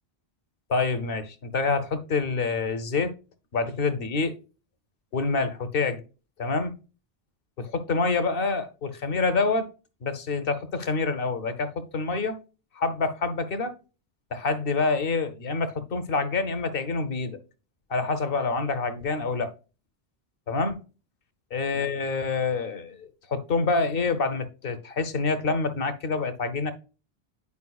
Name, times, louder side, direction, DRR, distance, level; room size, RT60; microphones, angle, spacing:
voice 1, 0.7-3.1 3.5-4.3 5.1-6.0 6.4-6.7 7.6-9.7 10.0-12.3 12.7-13.7 14.3-17.4 17.9-19.5 20.5-20.8 21.5-26.7, left 4 dB, 65° left, 1.0 m, -27 dB
9.7 x 5.1 x 2.3 m
omnidirectional pair, 1.0 m